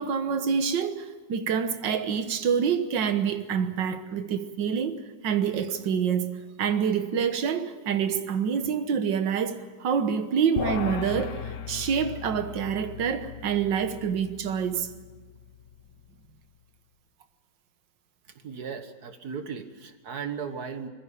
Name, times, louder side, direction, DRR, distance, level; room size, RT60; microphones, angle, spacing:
voice 1, 0.0-11.4 11.7-14.9, right 7 dB, 75° right, 1.8 m, -27 dB
sound 1, 10.6-16.1, left 7 dB, 55° left, 1.1 m, -37 dB
voice 2, 18.3-20.9, right 6 dB, 60° right, 1.7 m, -36 dB
21.5 x 15.0 x 9.9 m
omnidirectional pair, 2.0 m